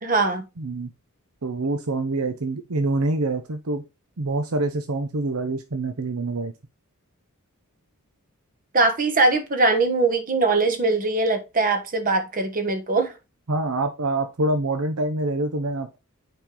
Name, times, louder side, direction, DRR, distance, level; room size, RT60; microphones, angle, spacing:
voice 1, 0.0-0.4 8.7-13.1, right 3 dB, 40° right, 1.4 m, -21 dB
voice 2, 0.6-0.9 1.4-3.8 4.2-6.5 13.5-16.0, right 2 dB, 80° right, 0.8 m, -26 dB
7.4 x 5.2 x 3.8 m
head